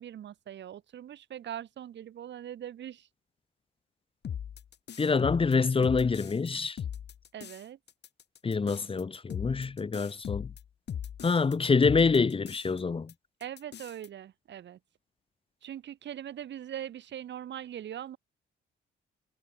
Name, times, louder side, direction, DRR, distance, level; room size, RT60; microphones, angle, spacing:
voice 1, 0.0-3.1 7.3-7.8 13.4-14.8 15.6-18.2, right 10 dB, 65° right, 1.8 m, -41 dB
sound 1, 4.2-6.5 6.8-7.6 7.9-11.5 11.8-12.8 13.1-13.2 13.4-14.1, left 8 dB, 60° left, 7.1 m, -39 dB
voice 2, 5.0-6.8 8.4-10.5 11.2-13.1, left 4 dB, 25° left, 1.1 m, -26 dB
cardioid pair, 90°, 20 cm